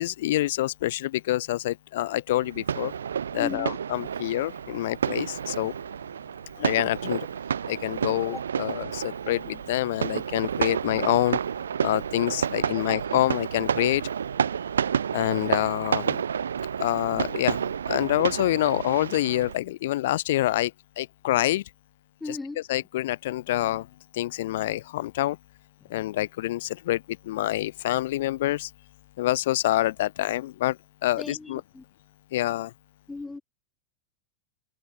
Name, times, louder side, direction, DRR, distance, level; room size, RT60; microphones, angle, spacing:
voice 1, 0.0-2.9 3.3-5.7 6.6-7.3 7.7-11.4 11.8-14.0 15.1-16.2 16.8-21.6 22.7-23.9 24.1-25.4 25.9-28.7 29.2-30.8 31.0-31.6 32.3-32.7, left 15 dB, 55° left, 0.6 m, -26 dB
sound 1, 2.3-19.5, right 7 dB, 70° right, 0.6 m, -30 dB
voice 2, 3.4-3.7 8.2-8.4 12.7-13.0 22.2-22.6 25.8-25.9 31.2-31.8 33.1-33.4, left 3 dB, 10° left, 3.2 m, -37 dB
figure-of-eight pair, 90°, 0 cm